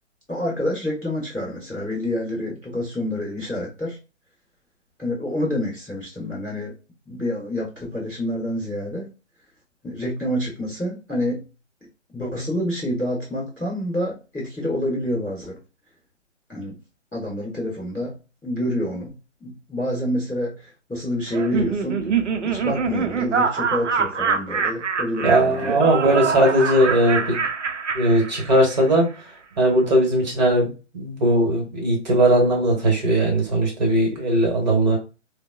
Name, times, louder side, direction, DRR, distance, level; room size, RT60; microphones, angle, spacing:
voice 1, 0.3-4.0 5.0-6.7 7.0-9.1 9.8-11.4 12.1-15.6 16.5-16.8 17.1-18.1 18.4-19.1 19.4-22.0 22.4-25.8, left 1 dB, ahead, -25 dB, 0.5 m, -27 dB
Laughter, 21.3-28.8, right 6 dB, 70° right, 0.5 m, -25 dB
voice 2, 25.2-27.4 27.9-29.1 29.6-35.0, right 1 dB, 35° right, 1 dB, 1.0 m, -19 dB
3.5 x 2.0 x 2.2 m, 0.31 s
figure-of-eight pair, 145°, 37 cm